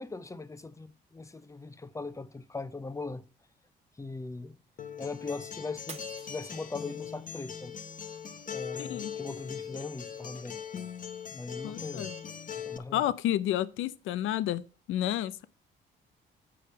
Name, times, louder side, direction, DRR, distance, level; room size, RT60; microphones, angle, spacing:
voice 1, 0.0-3.3 4.0-4.6 5.0-7.8 8.5-10.6 11.3-12.1 12.6-13.0, left 3 dB, 15° left, 0.7 m, -40 dB
Acoustic guitar, 4.8-12.8, left 8 dB, 40° left, 0.9 m, -41 dB
Shatter, 5.9-7.2 7.7-8.1 8.7-8.8, right 4 dB, 35° right, 1.3 m, -48 dB
voice 2, 8.8-9.1 11.6-12.1 12.9-14.6 14.9-15.4, left 12 dB, 85° left, 0.6 m, -30 dB
7.9 x 5.0 x 5.5 m
cardioid pair, 90°, 20 cm